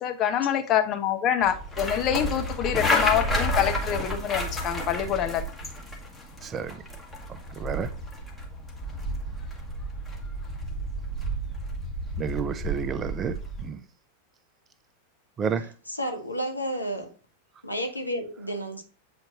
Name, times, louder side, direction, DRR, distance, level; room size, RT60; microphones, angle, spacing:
voice 1, 0.0-5.4, left 9 dB, 35° left, 0.9 m, -26 dB
sound 1, 1.4-13.7, equal, 15° left, 1.6 m, -31 dB
voice 2, 6.4-6.8 7.3-7.9 12.2-13.8 15.4-15.7, right 7 dB, 25° right, 0.6 m, -31 dB
voice 3, 15.9-17.1 17.6-18.8, equal, 85° left, 0.9 m, -31 dB
7.7 x 4.3 x 2.9 m
figure-of-eight pair, 90°, 0 cm